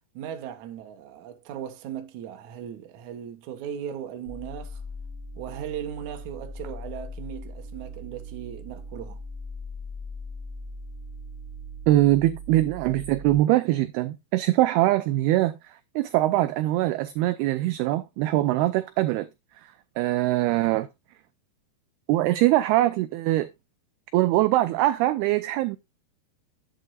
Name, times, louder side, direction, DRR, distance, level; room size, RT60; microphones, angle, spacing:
voice 1, 0.1-4.8 5.4-9.2, right 9 dB, 65° right, 2.0 m, -37 dB
sound 1, 4.3-13.4, equal, 45° left, 6.2 m, -39 dB
voice 2, 11.9-19.3 20.0-20.9 22.1-23.5 24.1-25.8, right 16 dB, 85° right, 2.3 m, -22 dB
11.0 x 7.6 x 2.4 m
omnidirectional pair, 5.2 m